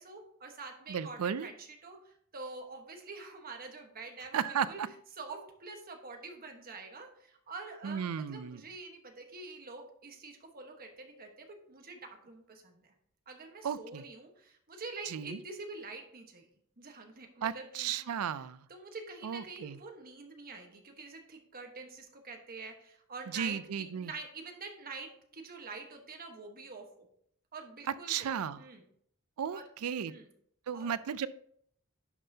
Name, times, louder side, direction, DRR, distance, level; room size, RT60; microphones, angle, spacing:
voice 1, 0.0-4.8 5.1-12.0 12.2-12.9 13.3-16.5 16.8-18.2 18.7-27.1 27.5-28.8 29.5-29.6 30.1-30.3 30.7-30.9, right 3 dB, 45° right, 3 dB, 1.2 m, -46 dB
voice 2, 0.9-1.5 4.3-4.9 7.8-8.6 13.6-14.0 15.1-15.4 17.4-18.6 19.2-19.8 23.3-24.1 28.1-28.6 29.4-30.1 30.7-31.3, right 8 dB, 75° right, 16 dB, 0.4 m, -34 dB
11.0 x 5.5 x 2.8 m, 0.66 s
head